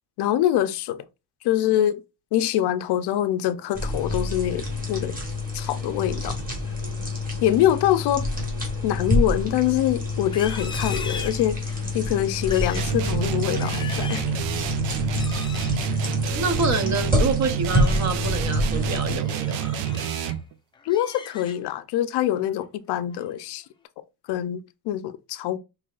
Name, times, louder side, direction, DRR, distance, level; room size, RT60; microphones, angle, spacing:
voice 1, 0.2-1.1 1.4-2.0 2.3-5.2 5.5-6.4 7.4-8.3 8.8-14.3 20.8-23.7 24.3-25.6, left 12 dB, 65° left, 0.6 m, -24 dB
sound 1, 3.7-19.2, left 2 dB, 20° right, 1.6 m, -27 dB
Livestock farm animals working animals, 10.2-11.9 12.3-13.0 13.4-14.3 15.1-15.7 17.4-18.0 18.5-18.7 19.2-20.4 20.7-21.8 22.2-22.5 22.9-23.3, left 5 dB, 10° left, 0.3 m, -39 dB
sound 2, 12.8-20.5, right 10 dB, 80° right, 0.7 m, -28 dB
voice 2, 16.3-19.8, right 4 dB, 40° right, 0.8 m, -27 dB
6.1 x 3.2 x 2.4 m
cardioid pair, 170°, 44 cm